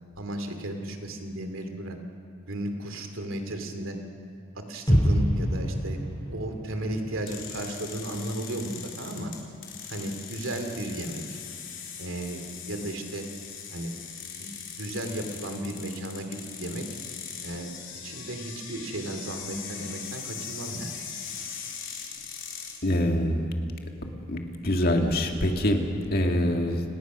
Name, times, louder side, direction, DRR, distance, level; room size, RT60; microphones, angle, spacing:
voice 1, 0.2-2.0 2.5-4.0 4.5-6.0 6.3-9.3 9.9-11.2 12.0-13.3 13.7-13.9 14.4-16.8 17.4-17.7 18.0-21.0 26.4-26.6, right 1 dB, 80° right, 5 dB, 2.7 m, -34 dB
sound 1, 4.9-8.8 9.1-9.2, equal, 20° left, 4.9 m, -28 dB
sound 2, 7.3-22.8, left 7 dB, 65° left, 3.9 m, -40 dB
voice 2, 22.8-23.5 24.0-26.8, left 1 dB, 50° left, 3 dB, 2.2 m, -25 dB
29.0 x 19.0 x 6.2 m, 2.5 s
head